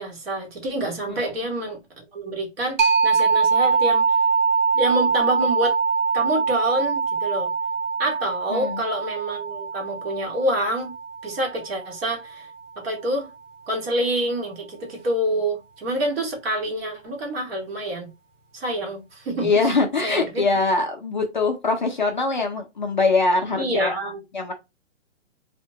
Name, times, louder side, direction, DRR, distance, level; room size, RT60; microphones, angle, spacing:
voice 1, 0.0-4.2 4.7-5.7 6.1-7.5 8.0-10.9 11.2-12.5 12.8-13.3 13.7-18.1 18.5-19.7 20.0-20.4 23.5-24.2, right 1 dB, 50° right, 1.3 m, -27 dB
sound 1, 2.8-12.2, right 5 dB, 75° right, 1.0 m, -23 dB
voice 2, 8.5-8.8 19.4-23.9 24.3-24.5, left 3 dB, 40° left, 0.4 m, -22 dB
2.7 x 2.1 x 2.7 m
hypercardioid pair, 165°, 38 cm